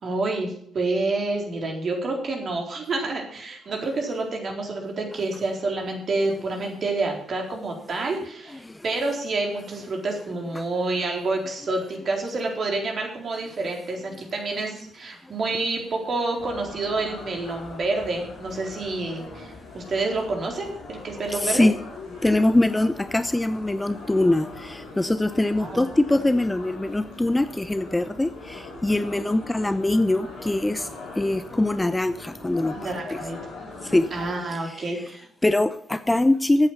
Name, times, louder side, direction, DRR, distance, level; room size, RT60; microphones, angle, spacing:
voice 1, 0.0-21.7 25.6-25.8 29.1-29.2 32.7-33.4 34.1-35.2, right 3 dB, 45° right, 1 dB, 4.1 m, -28 dB
sound 1, 16.4-34.3, left 3 dB, 60° left, 5.0 m, -41 dB
voice 2, 21.3-21.7 22.2-30.9 31.1-33.2 33.8-34.1 34.5-35.1 35.4-36.7, left 2 dB, 15° left, 13 dB, 0.7 m, -23 dB
14.0 x 8.7 x 5.8 m, 0.67 s
figure-of-eight pair, 45°, 0 cm